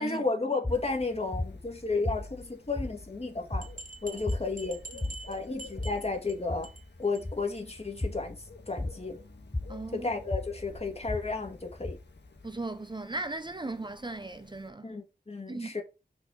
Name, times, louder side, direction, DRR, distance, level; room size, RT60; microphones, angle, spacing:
voice 1, 0.0-3.7 4.0-4.8 5.3-6.7 7.0-9.2 9.9-12.0 14.8-15.8, left 3 dB, 35° left, 2.3 m, -33 dB
sound 1, 0.6-12.6, left 2 dB, 15° left, 0.5 m, -37 dB
Bird, 0.7-14.7, left 4 dB, 90° left, 1.6 m, -53 dB
sound 2, 3.6-6.3 6.6-6.9 7.1-7.2 7.6-7.7 8.0-8.1, right 3 dB, 55° right, 1.5 m, -46 dB
voice 2, 9.7-10.1 12.4-14.9 15.5-15.7, right 2 dB, 25° right, 0.7 m, -37 dB
6.0 x 4.3 x 5.7 m
wide cardioid pair, 55°, 17 cm